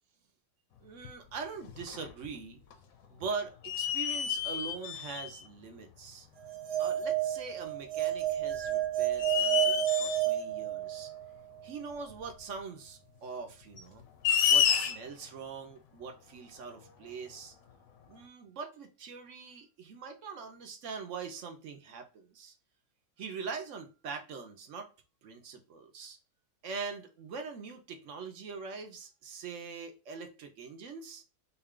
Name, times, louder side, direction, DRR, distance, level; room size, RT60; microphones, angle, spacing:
voice 1, 0.8-2.6 3.1-6.3 6.8-11.1 11.6-14.0 14.5-17.5 18.1-22.5 23.2-24.9 25.2-26.2 26.6-31.2, right 5 dB, 60° right, 0.9 m, -42 dB
sound 1, 1.0-1.1 1.7-2.4 2.7-2.8 3.6-5.5 6.5-6.6 8.4-8.7 9.2-10.3 12.1-12.2 13.7-15.2, left 8 dB, 65° left, 1.0 m, -29 dB
sound 2, 6.5-11.3, right 12 dB, 80° right, 1.2 m, -31 dB
4.0 x 2.3 x 3.6 m
omnidirectional pair, 1.7 m